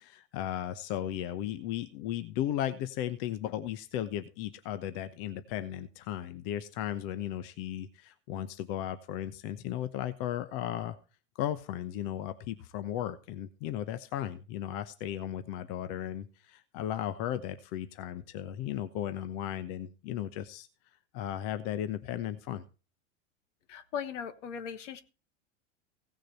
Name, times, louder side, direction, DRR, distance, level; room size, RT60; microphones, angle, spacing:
voice 1, 0.0-11.0 11.4-20.7 21.1-22.6, left 11 dB, 50° left, 12 dB, 1.0 m, -35 dB
voice 2, 23.7-25.0, left 7 dB, 70° left, 11 dB, 1.4 m, -38 dB
16.5 x 6.5 x 4.2 m, 0.34 s
hypercardioid pair, 90°, 37 cm